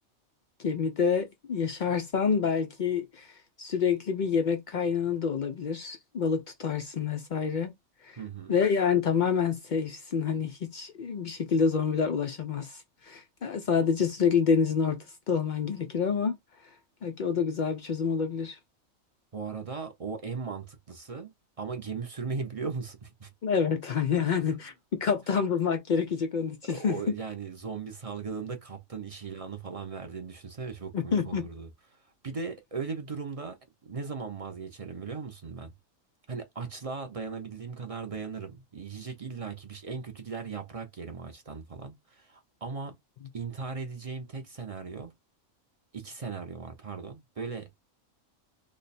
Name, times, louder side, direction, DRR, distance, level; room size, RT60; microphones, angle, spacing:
voice 1, 0.6-3.3 3.6-7.7 8.0-8.2 8.5-16.4 17.0-18.6 23.4-27.0 30.9-31.5, left 6 dB, 90° left, 0.4 m, -27 dB
voice 2, 8.2-8.6 19.3-21.3 21.6-23.3 25.0-25.1 26.6-32.0 32.2-33.6 33.8-35.7 36.3-43.0 43.3-45.1 45.9-47.7, right 5 dB, 55° right, 0.4 m, -38 dB
3.2 x 2.2 x 4.0 m
omnidirectional pair, 1.4 m